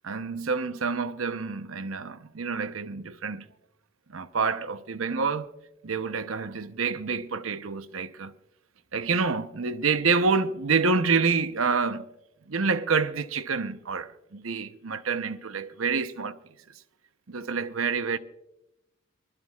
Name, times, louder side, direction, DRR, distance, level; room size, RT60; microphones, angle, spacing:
voice 1, 0.0-3.4 4.1-5.5 5.8-8.3 8.9-12.0 12.5-16.4 17.3-18.2, right 5 dB, 75° right, 0.8 m, -27 dB
24.5 x 13.0 x 2.4 m
head